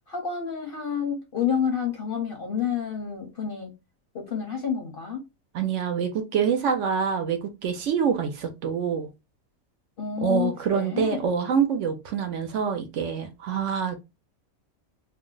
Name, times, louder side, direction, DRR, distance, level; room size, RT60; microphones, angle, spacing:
voice 1, 0.1-3.7 4.1-5.2 10.0-11.3, left 7 dB, 55° left, 0.7 m, -29 dB
voice 2, 5.5-9.1 10.2-14.0, right 7 dB, 70° right, 0.8 m, -26 dB
2.6 x 2.0 x 3.6 m
omnidirectional pair, 1.5 m